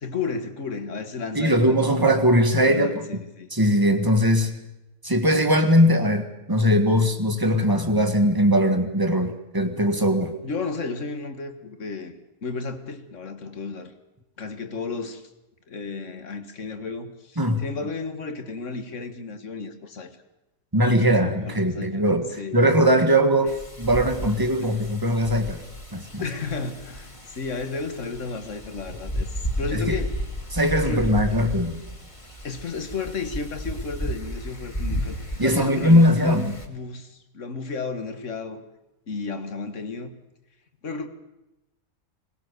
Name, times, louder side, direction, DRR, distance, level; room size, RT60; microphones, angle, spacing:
voice 1, 0.0-2.4 2.7-3.5 10.4-12.2 12.4-13.9 14.4-15.3 15.7-20.2 20.8-22.1 22.4-22.7 26.2-30.1 30.8-31.4 32.4-38.6 39.1-40.1 40.8-41.1, left 4 dB, 60° left, 8 dB, 1.9 m, -33 dB
voice 2, 1.3-3.2 3.5-4.5 5.0-10.3 17.4-17.6 20.7-22.3 22.5-25.6 25.9-26.2 29.7-30.0 30.5-31.8 35.4-36.4, equal, 15° right, 6 dB, 1.7 m, -20 dB
Wind, 23.5-36.7, equal, 20° left, 2.1 m, -33 dB
21.0 x 19.0 x 6.7 m, 0.97 s
omnidirectional pair, 1.5 m